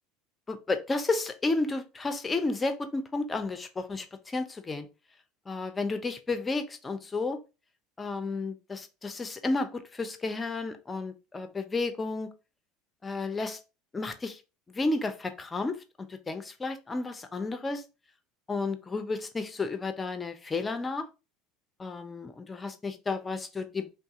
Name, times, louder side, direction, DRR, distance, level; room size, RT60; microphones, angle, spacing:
voice 1, 0.5-4.9 5.5-7.4 8.0-12.3 13.0-13.6 13.9-14.4 14.7-15.8 16.1-17.8 18.5-21.1 21.8-23.9, left 3 dB, 20° left, 0.7 m, -32 dB
2.7 x 2.6 x 3.6 m
hypercardioid pair, 75°, 0 cm